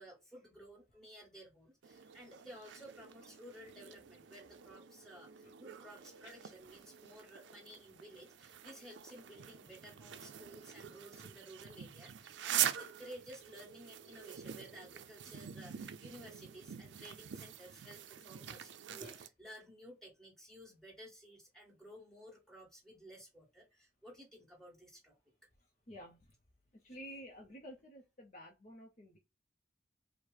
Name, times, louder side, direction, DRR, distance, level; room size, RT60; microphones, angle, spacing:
voice 1, 0.0-25.2, equal, 5° left, 1.5 m, -55 dB
sound 1, 1.8-19.3, right 10 dB, 80° right, 0.4 m, -44 dB
voice 2, 25.9-26.3 26.7-29.2, equal, 40° left, 0.6 m, -51 dB
4.5 x 2.1 x 3.2 m
head